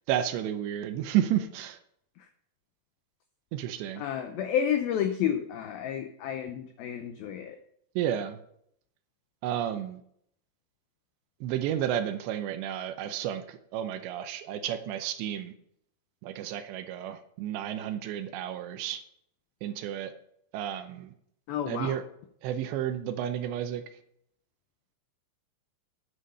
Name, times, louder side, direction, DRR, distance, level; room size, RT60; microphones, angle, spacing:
voice 1, 0.1-1.8 3.5-4.0 8.0-8.4 9.4-10.0 11.4-15.5 16.2-19.0 19.6-20.1 20.5-21.1 21.7-22.0 22.4-23.8, right 11 dB, 80° right, 9 dB, 2.8 m, -31 dB
voice 2, 4.0-7.6 21.5-22.0, left 9 dB, 85° left, 7 dB, 2.1 m, -30 dB
9.6 x 8.6 x 5.4 m, 0.69 s
omnidirectional pair, 5.3 m